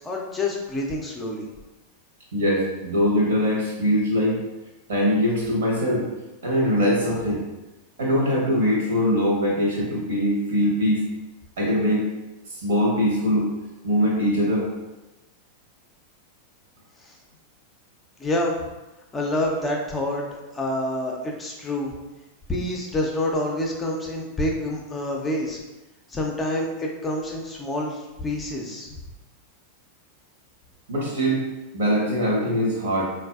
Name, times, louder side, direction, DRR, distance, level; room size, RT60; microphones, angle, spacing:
voice 1, 0.0-1.5 17.0-17.2 18.2-18.6 19.1-20.2 20.5-21.9 22.5-25.6 26.1-29.0, left 1 dB, 15° left, -1 dB, 0.5 m, -27 dB
voice 2, 2.3-4.4 4.9-6.0 6.4-7.4 8.0-11.0 11.6-12.1 12.5-13.5 13.8-14.7 30.9-31.4 31.7-33.0, equal, 60° right, -2 dB, 0.9 m, -22 dB
3.8 x 2.3 x 2.3 m, 1.0 s
figure-of-eight pair, 90°, 0 cm